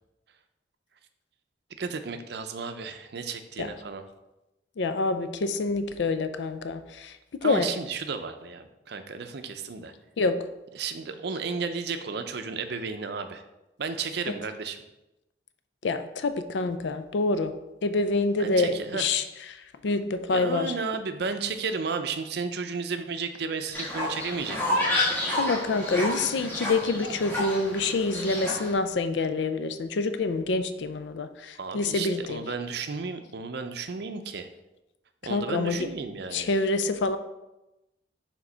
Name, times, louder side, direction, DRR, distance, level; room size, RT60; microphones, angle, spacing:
voice 1, 1.8-4.0 7.4-9.9 10.7-13.4 13.8-14.8 18.4-19.1 20.3-25.2 31.6-34.5 35.2-36.5, right 5 dB, 60° right, 8 dB, 0.5 m, -33 dB
voice 2, 4.8-7.7 10.2-10.4 14.3-14.4 15.8-17.5 17.8-19.2 19.5-20.7 25.3-32.4 35.3-35.9 36.3-37.2, left 3 dB, 75° left, 10 dB, 0.4 m, -27 dB
Fowl, 23.7-28.7, left 1 dB, 10° left, 1.5 m, -30 dB
4.9 x 3.7 x 5.5 m, 0.96 s
head